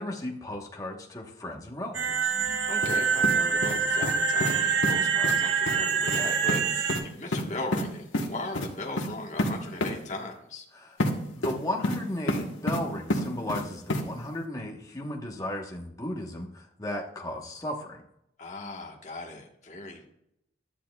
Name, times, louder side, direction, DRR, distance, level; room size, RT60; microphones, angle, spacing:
voice 1, 0.0-2.3 10.7-11.0 11.3-18.0, left 1 dB, 20° left, 0 dB, 1.2 m, -35 dB
sound 1, 1.9-7.0, right 6 dB, 70° right, 1.0 m, -26 dB
voice 2, 2.4-10.6 18.4-20.0, left 2 dB, 40° left, -1 dB, 1.4 m, -38 dB
sound 2, 2.8-3.0 3.2-4.1 4.4-4.6 4.8-4.9 5.2-5.4 5.7-5.8 6.1-6.2 6.5-6.6 6.9-7.0 7.3-7.8 8.1-8.3 8.5-8.7 9.0-9.1 9.4-9.5 9.8-9.9 11.0-11.1 11.4-12.0 12.3-12.8 13.1-13.6 13.9-14.0, left 1 dB, 85° left, 1.3 m, -28 dB
12.5 x 10.0 x 2.3 m, 0.79 s
head